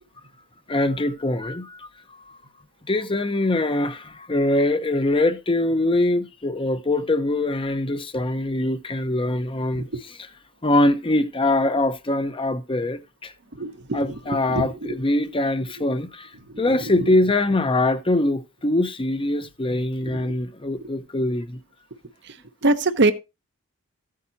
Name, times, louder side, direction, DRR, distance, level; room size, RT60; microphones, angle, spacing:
voice 1, 0.7-2.4 2.9-9.9 10.6-13.3 13.9-16.3 16.6-21.6, left 2 dB, 25° left, 0.8 m, -23 dB
voice 2, 13.5-15.0 15.8-15.9 16.5-17.1 20.0-20.3 20.8-20.9 22.2-22.4 22.6-23.1, right 2 dB, 60° right, 1.0 m, -25 dB
14.5 x 8.5 x 2.7 m
head